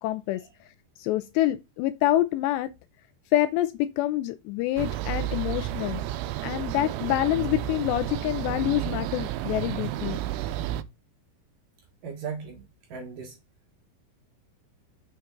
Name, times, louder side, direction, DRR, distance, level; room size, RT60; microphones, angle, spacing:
voice 1, 0.0-0.4 1.0-2.7 3.3-6.0 6.4-10.2, left 14 dB, 85° left, 2.5 m, -26 dB
sound 1, 4.8-10.8, right 12 dB, 85° right, 2.5 m, -31 dB
voice 2, 12.0-12.6 12.9-13.4, right 6 dB, 60° right, 2.5 m, -37 dB
7.0 x 6.6 x 3.7 m
omnidirectional pair, 5.3 m